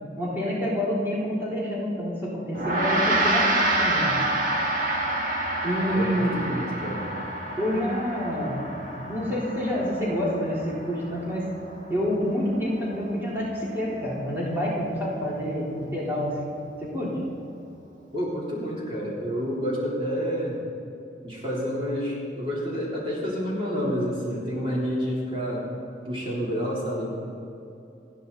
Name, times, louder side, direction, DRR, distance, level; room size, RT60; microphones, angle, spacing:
voice 1, 0.2-4.2 5.6-6.4 7.6-8.7 9.1-11.5 11.9-16.5 16.8-17.1, equal, 10° right, -7 dB, 3.6 m, -28 dB
Gong, 2.5-12.1, right 1 dB, 45° right, 1.8 m, -27 dB
voice 2, 5.8-7.1 8.9-9.1 18.1-20.6 21.2-25.7 26.0-27.1, equal, 30° right, -6 dB, 3.4 m, -29 dB
29.5 x 10.0 x 4.1 m, 2.8 s
head